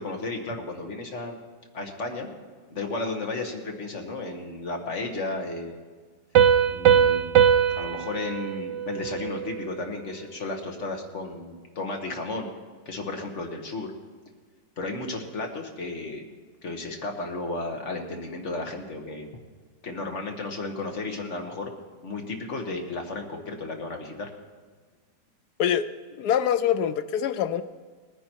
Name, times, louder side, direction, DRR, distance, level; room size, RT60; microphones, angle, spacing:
voice 1, 0.0-1.4 1.7-2.3 2.7-5.8 6.7-7.3 7.7-12.5 12.8-13.9 14.8-16.2 16.6-19.3 19.8-21.7 22.0-24.3, left 2 dB, 45° left, 3 dB, 1.7 m, -33 dB
Piano, 6.3-9.8, right 8 dB, 85° right, 1.3 m, -21 dB
voice 2, 25.6-27.6, left 9 dB, 70° left, 11 dB, 1.0 m, -25 dB
19.5 x 9.8 x 4.6 m, 1.5 s
omnidirectional pair, 1.9 m